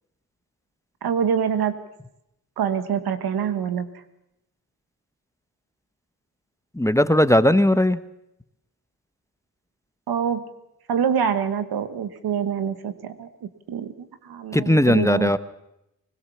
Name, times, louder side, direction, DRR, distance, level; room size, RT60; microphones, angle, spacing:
voice 1, 1.0-1.8 2.6-3.9 10.1-10.4 10.9-15.4, right 7 dB, 85° right, 11 dB, 1.4 m, -25 dB
voice 2, 6.8-8.0 14.5-15.4, left 1 dB, 10° left, 13 dB, 1.0 m, -18 dB
20.5 x 20.5 x 7.1 m, 0.84 s
cardioid pair, 45°, 36 cm